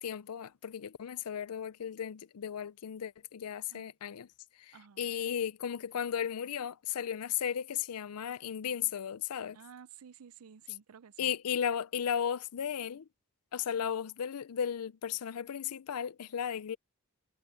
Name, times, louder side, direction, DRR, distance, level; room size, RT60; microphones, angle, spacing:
voice 1, 0.0-4.3 4.5-9.6 11.2-13.1 13.5-16.8, left 8 dB, 85° left, 0.5 m, -35 dB
voice 2, 4.7-5.1 9.5-11.3, right 7 dB, 75° right, 0.5 m, -53 dB
head